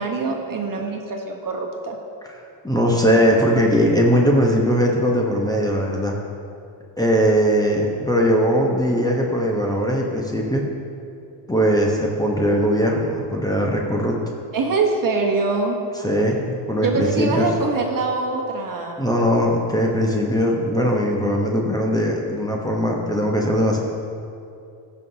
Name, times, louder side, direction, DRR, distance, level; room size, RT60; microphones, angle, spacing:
voice 1, 0.0-2.0 14.5-15.8 16.8-19.1, right 3 dB, 40° right, 1 dB, 1.3 m, -23 dB
voice 2, 2.6-6.2 7.0-10.7 11.5-14.1 16.0-17.5 19.0-23.8, equal, 10° left, -2 dB, 1.0 m, -20 dB
15.0 x 5.7 x 2.8 m, 2.6 s
supercardioid pair, 80°, 50 cm